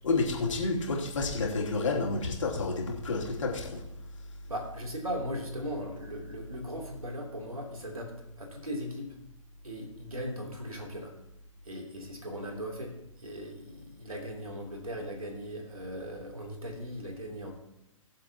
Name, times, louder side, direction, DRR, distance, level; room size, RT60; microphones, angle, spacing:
voice 1, 0.0-3.8, left 3 dB, 60° left, -2 dB, 3.0 m, -30 dB
voice 2, 4.5-9.1 9.6-11.1 11.6-17.5, equal, 85° right, -1 dB, 3.2 m, -38 dB
21.0 x 7.5 x 3.0 m, 0.85 s
figure-of-eight pair, 125°, 18 cm